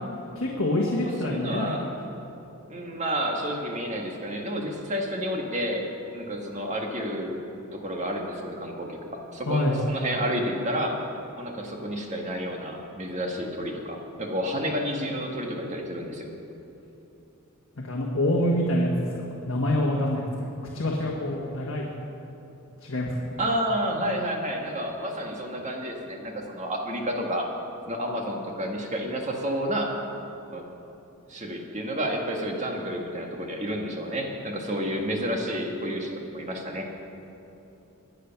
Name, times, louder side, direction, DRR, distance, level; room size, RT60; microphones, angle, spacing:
voice 1, 0.3-2.0 9.5-9.8 17.8-20.5 20.7-21.9 22.8-23.3, left 1 dB, 65° left, -2 dB, 1.5 m, -26 dB
voice 2, 1.0-1.8 2.7-5.8 6.1-7.4 7.7-11.0 11.4-16.3 23.4-27.5 27.9-29.9 30.5-30.6 31.3-36.9, equal, 35° right, 1 dB, 1.7 m, -30 dB
21.5 x 8.2 x 5.9 m, 3.0 s
head